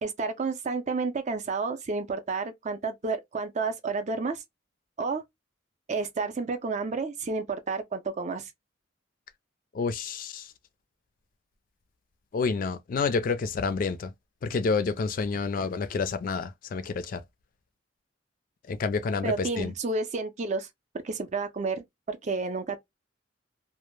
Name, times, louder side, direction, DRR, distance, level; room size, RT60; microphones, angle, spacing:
voice 1, 0.0-4.4 5.0-5.2 5.9-8.5 19.2-20.7 21.0-22.8, right 4 dB, 40° right, 0.4 m, -30 dB
voice 2, 9.7-10.5 12.3-14.1 14.4-17.2 18.7-19.7, left 4 dB, 45° left, 0.3 m, -29 dB
2.1 x 2.0 x 3.0 m
head